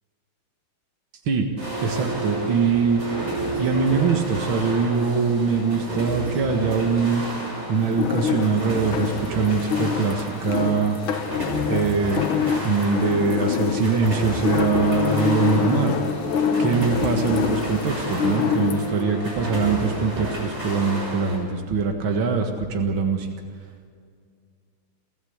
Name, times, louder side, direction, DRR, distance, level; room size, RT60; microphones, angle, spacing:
sound 1, 1.6-21.4, right 1 dB, 55° right, 7.1 m, -31 dB
voice 1, 1.8-3.0 3.6-7.2 7.7-11.0 11.7-12.3 12.6-16.0 16.6-23.3, right 5 dB, 70° right, 4 dB, 2.5 m, -23 dB
sound 2, 7.8-19.0, left 7 dB, 80° left, 1.9 m, -26 dB
29.0 x 14.0 x 8.0 m, 2.2 s
omnidirectional pair, 2.3 m